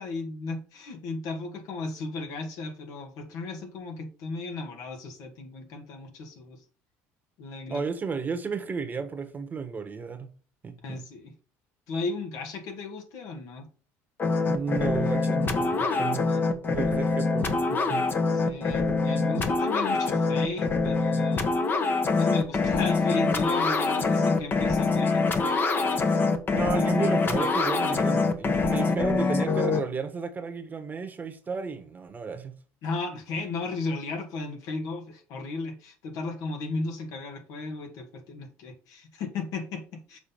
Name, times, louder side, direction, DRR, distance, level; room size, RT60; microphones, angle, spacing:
voice 1, 0.0-6.6 7.4-7.8 10.8-11.3 11.9-13.7 16.3-16.5 18.3-21.6 21.9-25.3 32.8-40.2, left 3 dB, 70° left, 2.0 m, -35 dB
voice 2, 7.7-10.3 10.6-11.0 14.5-16.3 16.7-18.1 26.5-32.5, right 5 dB, 30° right, 1.3 m, -33 dB
sound 1, 14.2-29.8, left 3 dB, 35° left, 1.2 m, -25 dB
7.0 x 4.1 x 5.7 m
supercardioid pair, 100°, 6 cm